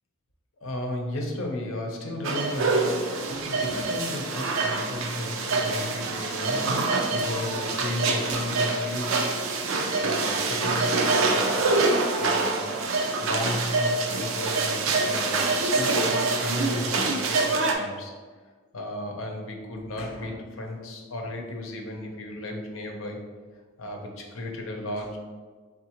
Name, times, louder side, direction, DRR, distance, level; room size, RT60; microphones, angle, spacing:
voice 1, 0.6-9.4 10.0-11.7 12.2-12.6 13.2-18.1 18.7-23.2 23.8-25.2, left 1 dB, 90° left, 2 dB, 0.7 m, -34 dB
sound 1, 2.2-17.7, right 3 dB, 85° right, 0.5 m, -25 dB
3.8 x 3.6 x 2.9 m, 1.5 s
head